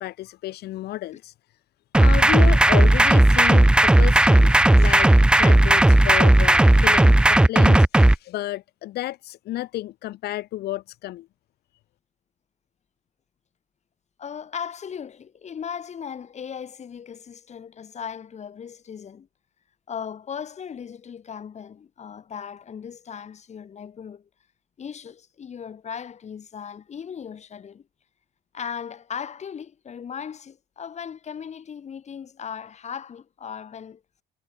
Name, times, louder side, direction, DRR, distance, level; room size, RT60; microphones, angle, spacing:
voice 1, 0.0-1.3 2.0-11.3, left 15 dB, 75° left, 1.6 m, -31 dB
sound 1, 1.9-8.1, right 1 dB, 5° right, 0.5 m, -15 dB
voice 2, 14.2-19.3 19.9-24.3 24.8-27.8 28.5-34.0, left 7 dB, 40° left, 5.5 m, -37 dB
cardioid pair, 110°, 17 cm